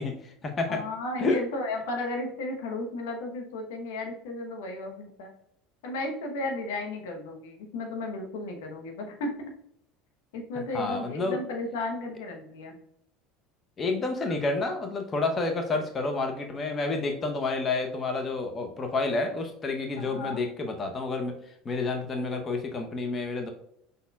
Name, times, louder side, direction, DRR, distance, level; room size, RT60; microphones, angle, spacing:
voice 1, 0.0-0.8 1.2-1.4 10.7-11.4 13.8-21.4 21.6-23.5, left 3 dB, 30° left, 4 dB, 0.8 m, -29 dB
voice 2, 0.7-5.3 5.8-9.3 10.3-12.7 20.0-20.4, left 2 dB, 75° left, 3 dB, 1.0 m, -34 dB
5.2 x 4.2 x 2.3 m, 0.74 s
hypercardioid pair, 80°, 0 cm